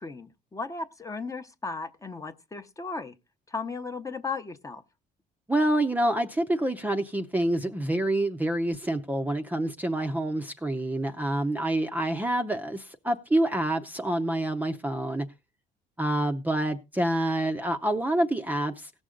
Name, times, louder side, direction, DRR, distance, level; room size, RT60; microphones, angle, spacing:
voice 1, 0.0-3.1 3.5-4.8, left 4 dB, 20° left, 0.8 m, -36 dB
voice 2, 5.5-15.3 16.0-18.9, right 1 dB, 10° right, 0.6 m, -27 dB
17.5 x 6.3 x 3.8 m
cardioid pair, 110°, 17 cm